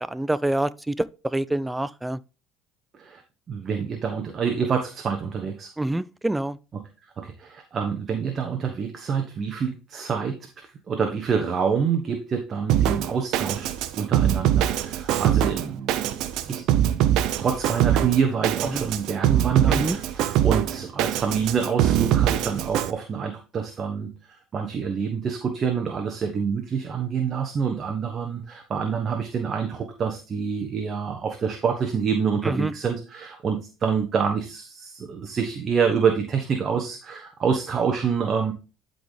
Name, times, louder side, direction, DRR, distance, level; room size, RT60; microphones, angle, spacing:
voice 1, 0.0-2.2 5.8-6.6 18.6-18.8 19.7-20.0 32.4-32.7, right 1 dB, 10° right, 0.4 m, -26 dB
voice 2, 3.5-5.7 6.7-6.8 7.2-16.2 16.5-16.6 17.4-24.1 24.5-38.5, right 6 dB, 35° right, 1.1 m, -27 dB
Drum kit, 12.7-22.9, right 11 dB, 65° right, 0.6 m, -23 dB
12.0 x 4.0 x 3.4 m
supercardioid pair, 100°, 0 cm